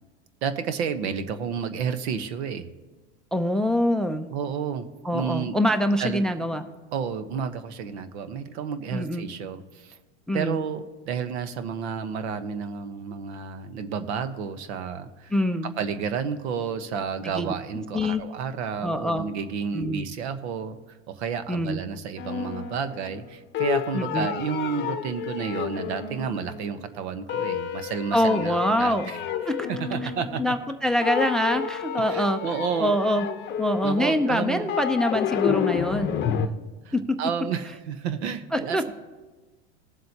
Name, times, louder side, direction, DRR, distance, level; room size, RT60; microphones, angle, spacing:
voice 1, 0.4-2.7 4.3-4.9 5.1-5.6 6.0-6.2 6.9-10.0 10.3-15.3 15.8-20.8 21.1-29.2 29.7-30.5 32.0-33.0 33.8-34.8 36.8-38.9, right 6 dB, 70° right, 10 dB, 1.1 m, -31 dB
voice 2, 3.3-4.3 5.0-6.6 8.9-9.2 10.3-10.6 15.3-15.7 17.4-17.5 17.9-18.2 18.8-19.3 19.7-20.1 21.5-21.8 23.9-24.3 28.1-29.1 29.5-29.6 30.4-32.5 32.8-33.3 33.6-36.3 36.9-37.2 38.5-38.8, equal, ahead, 9 dB, 0.5 m, -24 dB
sound 1, 22.2-23.3 23.5-26.8 27.3-30.7 31.0-36.5, left 8 dB, 30° left, 0.8 m, -30 dB
19.5 x 7.6 x 2.8 m, 1.3 s
hypercardioid pair, 110°, 34 cm